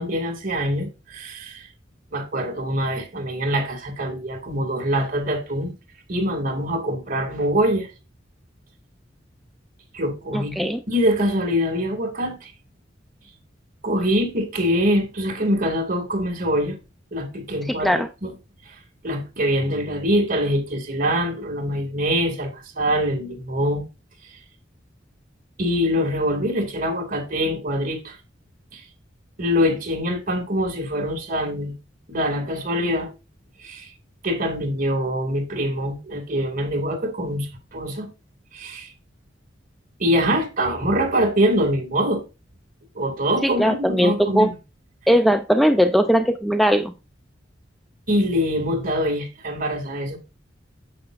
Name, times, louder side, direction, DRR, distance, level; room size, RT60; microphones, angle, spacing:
voice 1, 0.0-1.7 2.1-5.7 6.1-7.9 9.9-12.5 13.8-16.8 17.1-18.3 19.0-23.8 25.6-28.2 28.7-28.8 29.4-31.7 32.1-33.1 33.6-33.9 34.2-38.1 38.5-38.9 40.0-42.2 43.0-44.5 48.1-50.2, equal, 50° right, 2.3 m, -24 dB
voice 2, 10.3-10.8 17.7-18.1 43.4-44.5 45.1-46.9, equal, ahead, 0.4 m, -19 dB
9.4 x 7.5 x 2.5 m
head